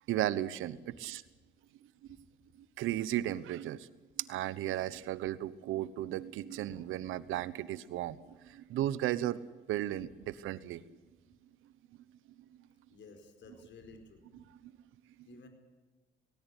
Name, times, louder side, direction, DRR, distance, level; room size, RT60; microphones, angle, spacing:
voice 1, 0.1-1.2 2.8-3.9 4.2-10.8 14.6-14.7, right 13 dB, 90° right, 17 dB, 1.0 m, -35 dB
voice 2, 12.9-14.2 15.3-15.5, left 3 dB, 65° left, 6 dB, 4.7 m, -54 dB
19.0 x 18.0 x 9.9 m, 1.2 s
cardioid pair, 90°, 20 cm